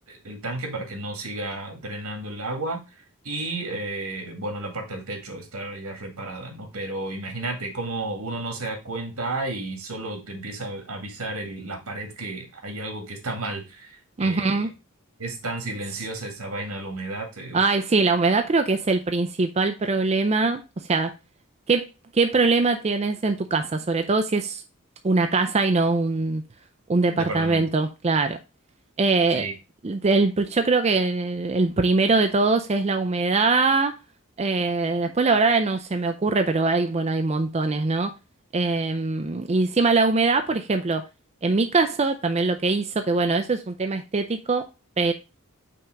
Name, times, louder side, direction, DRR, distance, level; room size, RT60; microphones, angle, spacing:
voice 1, 0.1-2.8 3.2-14.7 15.2-17.7 27.2-27.7 29.3-29.5, right 2 dB, 85° right, 2.0 m, -32 dB
voice 2, 14.2-14.7 17.5-21.1 21.7-21.9 22.1-24.6 25.0-26.4 26.9-28.4 29.0-29.5 29.8-34.0 34.4-38.1 38.5-41.0 41.4-44.7 45.0-45.1, right 3 dB, 30° right, 0.5 m, -22 dB
5.7 x 3.5 x 5.1 m
head